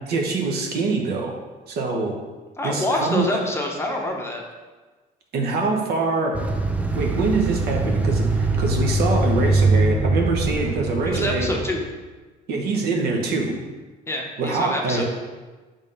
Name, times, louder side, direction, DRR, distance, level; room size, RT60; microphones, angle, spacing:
voice 1, 0.1-1.3 1.7-2.1 2.6-3.4 5.3-6.4 6.9-11.5 12.5-13.6 14.4-15.0, right 3 dB, 70° right, 1 dB, 1.1 m, -24 dB
voice 2, 2.6-4.4 11.1-11.8 14.1-15.0, left 1 dB, 15° left, 0 dB, 0.9 m, -26 dB
sound 1, 6.3-11.9, right 2 dB, 10° right, 0.5 m, -22 dB
5.3 x 3.6 x 5.5 m, 1.3 s
cardioid pair, 110°, 17 cm